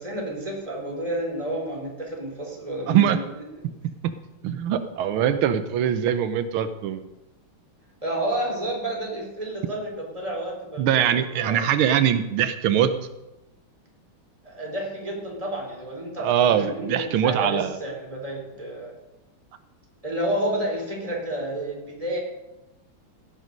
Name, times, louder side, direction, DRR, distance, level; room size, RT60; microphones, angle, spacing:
voice 1, 0.0-3.4 8.0-11.6 14.4-18.9 20.0-22.2, right 1 dB, 15° right, -2 dB, 3.8 m, -30 dB
voice 2, 2.9-3.2 4.0-4.1 4.4-7.1 10.8-12.9 16.2-17.8, right 9 dB, 90° right, 10 dB, 1.7 m, -22 dB
16.5 x 9.7 x 5.3 m, 0.97 s
omnidirectional pair, 2.3 m